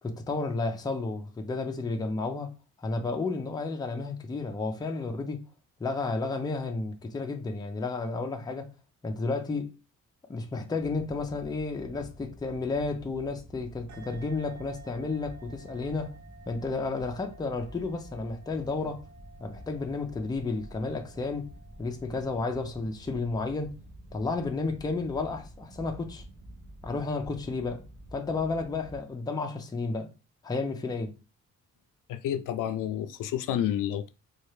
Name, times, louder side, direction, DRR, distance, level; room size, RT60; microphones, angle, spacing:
voice 1, 0.0-2.5 2.8-5.4 5.8-8.7 9.0-9.7 10.3-16.1 16.5-19.0 19.4-21.5 21.8-23.7 24.1-26.2 26.8-27.8 28.1-30.1 30.4-31.1, left 3 dB, 15° left, 0.4 m, -32 dB
sound 1, 10.8-29.0, right 1 dB, 25° right, 1.2 m, -49 dB
sound 2, 13.9-22.9, right 2 dB, 55° right, 0.7 m, -54 dB
voice 2, 32.1-34.1, left 10 dB, 80° left, 0.5 m, -30 dB
4.2 x 2.4 x 3.1 m
wide cardioid pair, 165°, 32 cm